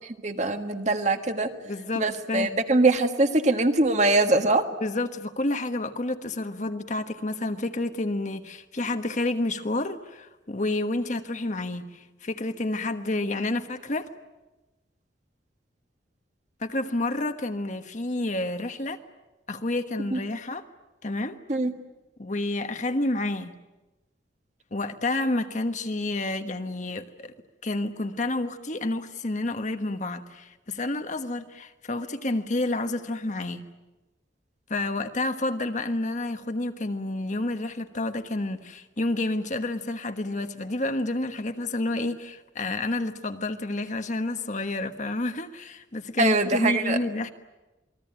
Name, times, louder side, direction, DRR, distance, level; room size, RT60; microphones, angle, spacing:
voice 1, 0.2-1.5 2.0-4.6 20.1-20.2 21.5-21.7 46.2-47.0, right 2 dB, 40° right, 6 dB, 1.7 m, -22 dB
voice 2, 1.6-2.5 4.8-14.1 16.6-19.0 19.5-20.6 21.0-21.4 22.2-23.6 24.7-27.3 27.6-33.7 34.7-47.3, left 2 dB, 40° left, 8 dB, 1.3 m, -29 dB
28.0 x 21.0 x 8.9 m, 1.1 s
head